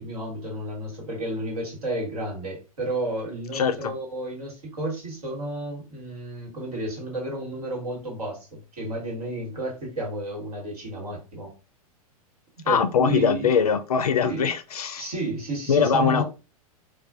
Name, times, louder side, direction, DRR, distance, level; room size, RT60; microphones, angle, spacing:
voice 1, 0.0-11.5 12.6-13.5 14.2-14.4 15.0-16.2, right 1 dB, 75° right, 1.4 m, -32 dB
voice 2, 3.5-3.9 12.7-15.1 15.7-16.2, left 6 dB, 80° left, 0.4 m, -22 dB
2.4 x 2.2 x 2.4 m
hypercardioid pair, 100°, 19 cm